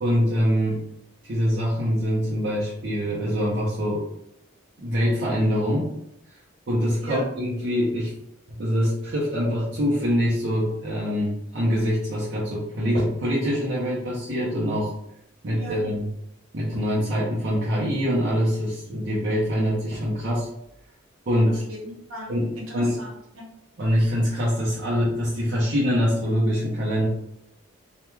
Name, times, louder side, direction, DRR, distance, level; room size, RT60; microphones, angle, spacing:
voice 1, 0.0-0.8 1.2-4.0 4.8-5.9 6.7-8.1 8.6-14.9 15.4-16.1 16.5-20.5 21.3-21.6 22.3-23.0 23.8-27.1, equal, 55° right, -8 dB, 0.6 m, -24 dB
voice 2, 15.5-15.9 21.5-23.4, equal, 75° right, -3 dB, 1.0 m, -38 dB
3.1 x 2.3 x 2.2 m, 0.78 s
head